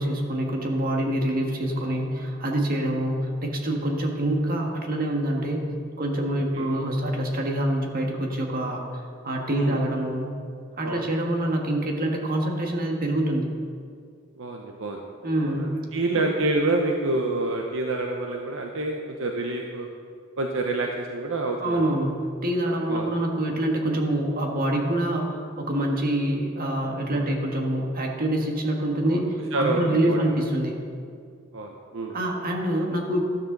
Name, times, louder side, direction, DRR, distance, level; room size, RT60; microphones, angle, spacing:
voice 1, 0.0-5.7 6.0-10.3 10.8-13.5 15.2-15.6 16.2-16.3 21.6-30.8 32.1-33.3, right 1 dB, 45° right, 1 dB, 1.7 m, -26 dB
voice 2, 6.3-6.7 9.5-9.8 10.8-11.1 14.4-15.0 15.4-19.9 20.4-21.9 22.9-23.1 27.1-27.3 29.0-29.3 29.5-30.4 31.5-32.2, right 2 dB, 65° right, 1 dB, 0.9 m, -28 dB
13.0 x 13.0 x 4.0 m, 2.3 s
head